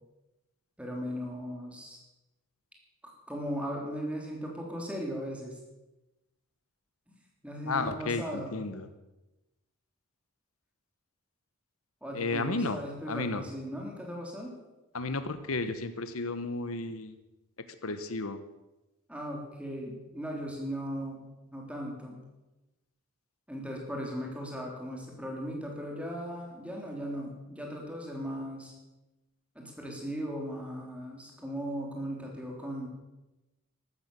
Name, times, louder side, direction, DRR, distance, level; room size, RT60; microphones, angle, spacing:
voice 1, 0.8-2.0 3.0-5.6 7.4-8.5 12.0-14.5 19.1-22.2 23.5-28.7 29.6-32.9, equal, 5° right, 0 dB, 3.6 m, -37 dB
voice 2, 7.6-8.9 12.1-12.8 13.1-13.4 14.9-17.1 17.8-18.4, left 3 dB, 80° left, 11 dB, 1.2 m, -33 dB
14.0 x 13.0 x 7.0 m, 1.0 s
head